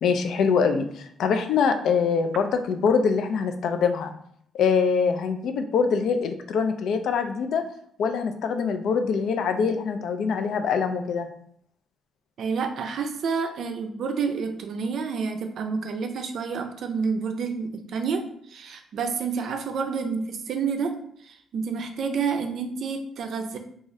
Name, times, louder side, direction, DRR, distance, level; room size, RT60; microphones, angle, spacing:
voice 1, 0.0-4.1 4.5-7.7 8.0-11.3, left 5 dB, 75° left, 7 dB, 0.3 m, -24 dB
voice 2, 12.4-20.9 21.2-23.6, right 5 dB, 65° right, 6 dB, 0.4 m, -29 dB
2.6 x 2.4 x 3.0 m, 0.67 s
cardioid pair, 90°, 0 cm